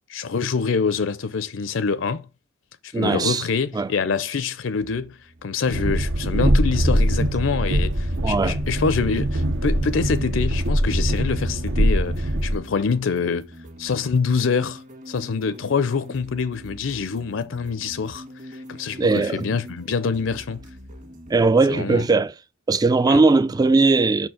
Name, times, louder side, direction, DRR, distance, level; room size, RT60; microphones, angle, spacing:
voice 1, 0.1-2.3 2.8-13.5 13.8-20.6 21.7-22.0 23.1-23.2, left 5 dB, 70° left, 0.5 m, -25 dB
voice 2, 2.9-3.4 3.7-3.9 8.2-8.6 19.0-19.5 21.3-22.3 22.7-24.3, right 3 dB, 20° right, 0.3 m, -19 dB
sound 1, 4.8-21.5, equal, 40° right, 1.7 m, -44 dB
Train, 5.7-12.5, equal, 70° right, 0.9 m, -22 dB
6.1 x 4.5 x 6.2 m
head